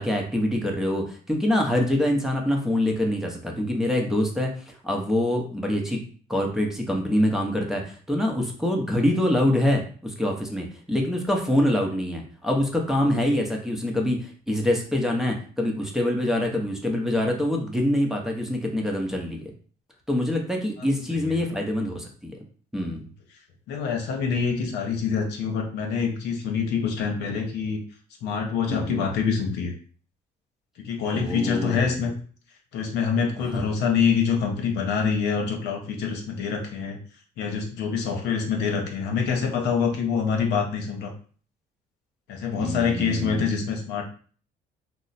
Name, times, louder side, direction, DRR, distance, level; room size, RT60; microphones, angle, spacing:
voice 1, 0.0-6.0 6.3-19.5 20.1-22.4 22.7-23.0 28.7-29.0 31.1-32.0 33.4-33.6 42.6-43.4, left 1 dB, ahead, 0 dB, 0.7 m, -25 dB
voice 2, 23.7-27.8 28.2-29.7 30.8-32.1 32.7-37.0 37.4-41.1 42.3-44.0, left 6 dB, 80° left, 2 dB, 0.8 m, -26 dB
3.0 x 2.1 x 4.0 m, 0.43 s
cardioid pair, 110°, 17 cm